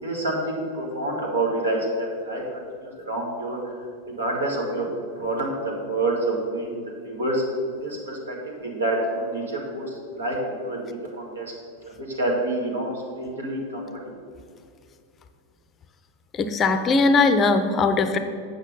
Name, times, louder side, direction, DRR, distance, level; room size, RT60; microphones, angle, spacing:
voice 1, 0.0-2.4 2.8-3.7 4.1-4.9 5.2-7.4 7.8-9.8 10.1-10.8 11.2-11.5 12.0-12.9 13.2-13.9, right 2 dB, 70° right, -1 dB, 1.9 m, -27 dB
voice 2, 16.3-18.2, left 3 dB, 25° left, 9 dB, 0.6 m, -20 dB
8.2 x 6.0 x 5.4 m, 2.3 s
figure-of-eight pair, 90°, 0 cm